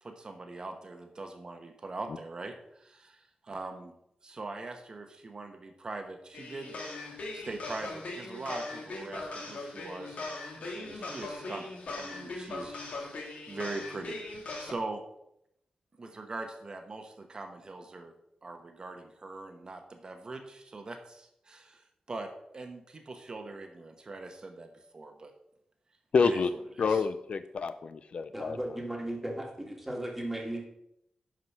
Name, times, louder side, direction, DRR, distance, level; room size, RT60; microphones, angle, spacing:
voice 1, 0.0-3.9 4.2-6.7 7.3-10.4 10.7-12.8 13.5-14.2 14.6-15.0 16.0-18.1 18.4-22.3 22.5-25.3 26.2-27.1, right 3 dB, 35° right, 5 dB, 1.0 m, -42 dB
sound 1, 6.3-14.7, left 2 dB, 75° left, 2.1 m, -40 dB
voice 2, 26.1-26.5 26.8-28.6, left 5 dB, 55° left, 12 dB, 0.4 m, -28 dB
voice 3, 28.3-30.7, right 1 dB, 5° right, 1 dB, 1.8 m, -36 dB
11.0 x 4.9 x 5.8 m, 0.78 s
wide cardioid pair, 165°, 2 cm